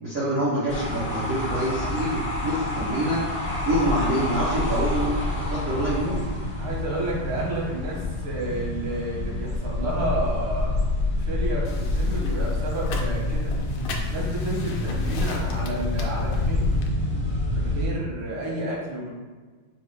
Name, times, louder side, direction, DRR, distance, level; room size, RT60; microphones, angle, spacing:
voice 1, 0.0-3.2 3.6-6.3, right 1 dB, 50° right, -10 dB, 1.1 m, -26 dB
sound 1, 0.7-17.9, left 2 dB, 30° left, 1.3 m, -27 dB
voice 2, 6.6-10.7 11.2-13.6 14.1-16.7 17.5-19.1, right 1 dB, 85° right, -3 dB, 2.0 m, -31 dB
sound 2, 11.6-16.9, left 3 dB, 80° left, 1.4 m, -39 dB
5.5 x 2.5 x 3.4 m, 1.4 s
omnidirectional pair, 2.4 m